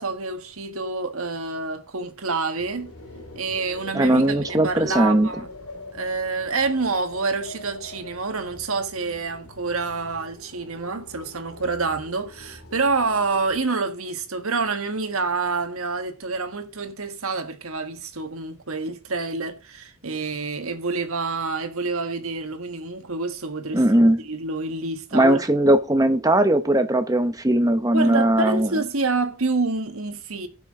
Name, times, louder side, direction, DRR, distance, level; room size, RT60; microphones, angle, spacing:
voice 1, 0.0-2.9 3.3-5.5 5.9-25.4 27.9-30.5, right 3 dB, 75° right, 1.5 m, -27 dB
sound 1, 2.6-13.6, left 2 dB, 85° left, 2.3 m, -43 dB
voice 2, 3.9-5.3 23.7-24.2 25.1-28.7, right 1 dB, 15° right, 0.8 m, -19 dB
16.5 x 5.9 x 3.7 m
head